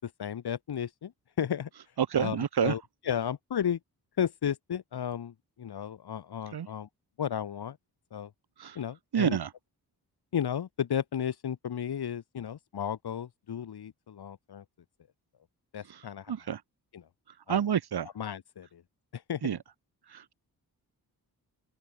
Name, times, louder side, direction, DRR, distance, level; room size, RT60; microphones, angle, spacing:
voice 1, 0.0-1.1 1.4-3.8 4.2-6.9 7.2-7.8 8.1-8.3 8.7-9.4 10.3-14.6 15.7-16.3 16.9-17.1 17.5-17.6 18.2-18.8 19.1-19.5, left 8 dB, 85° left, 4.9 m, -34 dB
voice 2, 2.0-2.7 6.5-6.7 8.6-8.8 9.1-9.5 16.3-16.6 17.5-18.1 19.4-19.6 20.1-20.3, right 8 dB, 80° right, 5.2 m, -28 dB
open air
wide cardioid pair, 105°, 38 cm